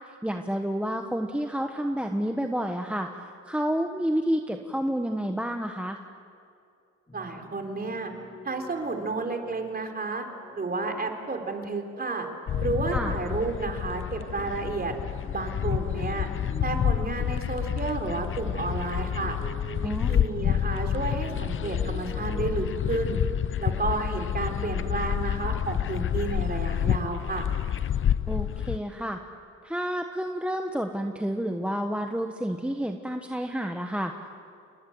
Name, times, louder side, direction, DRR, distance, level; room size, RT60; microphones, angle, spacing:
voice 1, 0.2-6.0 12.9-13.1 19.8-20.2 28.3-29.2 29.6-34.3, equal, 5° right, 4 dB, 1.3 m, -30 dB
sound 1, 7.1-22.9, right 2 dB, 15° left, 7.1 m, -47 dB
voice 2, 7.1-8.1 8.4-10.2 10.6-12.3 12.6-15.0 15.3-16.3 16.6-19.4 19.8-23.2 23.6-27.5, right 3 dB, 30° right, 4 dB, 3.8 m, -31 dB
sound 2, 12.5-28.8, left 9 dB, 45° left, 0.6 m, -28 dB
28.5 x 20.5 x 8.0 m, 2.4 s
cardioid pair, 90°, 30 cm